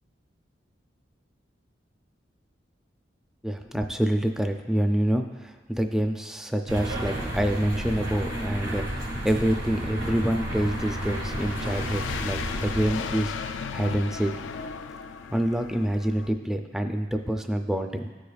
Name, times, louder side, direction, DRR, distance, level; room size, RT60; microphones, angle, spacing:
voice 1, 3.4-13.3 13.7-14.3 15.3-18.1, right 1 dB, 5° right, 5 dB, 0.3 m, -27 dB
sound 1, 6.7-12.9, right 1 dB, 85° right, 1.7 m, -32 dB
sound 2, 9.6-16.3, left 5 dB, 85° left, 0.4 m, -36 dB
13.5 x 4.9 x 2.3 m, 1.3 s
head